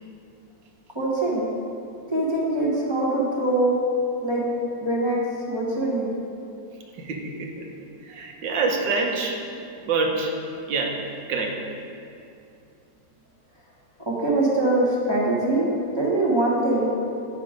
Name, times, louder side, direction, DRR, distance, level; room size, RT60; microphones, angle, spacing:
voice 1, 0.9-1.5 2.1-3.8 4.2-4.4 4.8-6.1 14.0-15.7 15.9-16.9, right 2 dB, 20° right, -6 dB, 1.0 m, -23 dB
voice 2, 7.0-7.7 8.0-9.4 9.8-10.4 10.7-11.6, right 3 dB, 75° right, 1 dB, 1.5 m, -26 dB
8.8 x 5.1 x 5.0 m, 2.6 s
omnidirectional pair, 2.0 m